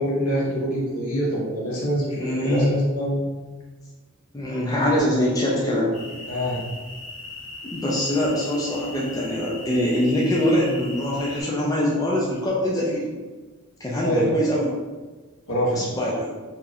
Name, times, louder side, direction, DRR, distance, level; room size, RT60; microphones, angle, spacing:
voice 1, 0.0-3.3 6.3-6.6 14.0-14.3 15.5-16.0, equal, 80° left, -5 dB, 1.1 m, -25 dB
voice 2, 2.2-2.8 4.3-5.9 7.6-13.1 13.8-14.7 15.7-16.3, left 1 dB, 15° left, -5 dB, 0.4 m, -23 dB
sound 1, 5.9-11.4, left 2 dB, 30° left, 0.9 m, -39 dB
2.8 x 2.4 x 3.9 m, 1.3 s
head